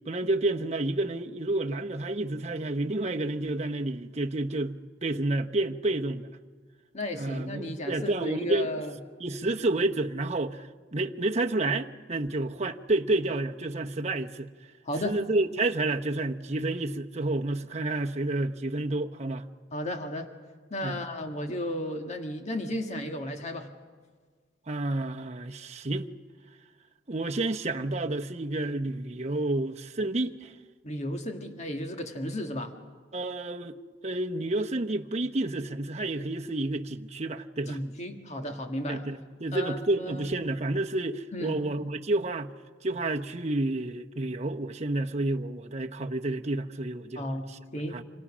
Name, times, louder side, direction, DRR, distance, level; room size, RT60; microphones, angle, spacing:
voice 1, 0.1-6.4 7.1-8.7 9.2-14.5 15.0-19.5 20.8-21.0 24.7-26.1 27.1-30.5 33.1-33.8 34.0-37.8 38.9-42.5 42.8-47.3 47.9-48.0, right 2 dB, 35° right, 1.0 m, -30 dB
voice 2, 6.9-9.0 14.8-15.1 19.7-20.3 20.7-23.7 30.8-32.7 37.7-39.1 39.5-40.3 41.3-41.6 47.2-47.5 47.7-48.0, left 1 dB, 35° left, 1.9 m, -34 dB
28.5 x 26.0 x 6.3 m
head